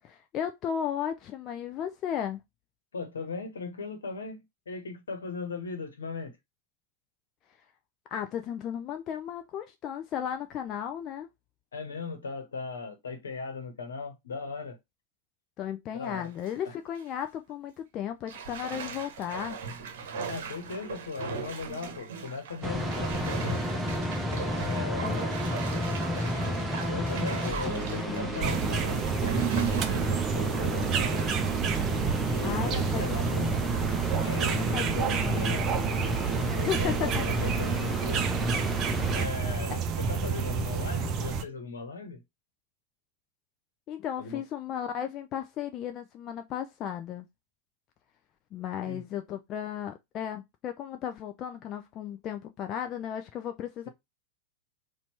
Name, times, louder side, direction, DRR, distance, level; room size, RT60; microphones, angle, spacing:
voice 1, 0.0-2.4 8.1-11.3 15.6-19.6 25.0-25.7 32.4-33.7 34.5-34.9 35.1-35.5 36.7-37.2 43.9-47.3 48.5-53.9, left 9 dB, 35° left, 0.4 m, -35 dB
voice 2, 2.9-6.4 11.7-14.8 15.9-16.3 16.6-16.8 20.3-23.6 24.6-25.4 26.2-26.4 26.9-31.4 32.2-33.7 34.2-36.1 36.6-38.3 39.1-42.2 44.2-44.4 48.8-49.0, left 4 dB, 70° left, 1.2 m, -38 dB
Bathtub (filling or washing), 16.1-16.5 17.0-17.1 18.3-31.4 31.8-31.9, right 5 dB, 55° right, 1.0 m, -39 dB
sound 1, 22.6-39.2, right 1 dB, 5° right, 0.8 m, -32 dB
sound 2, 28.4-41.4, right 6 dB, 30° right, 0.7 m, -29 dB
4.3 x 2.7 x 4.4 m
figure-of-eight pair, 90°, 0 cm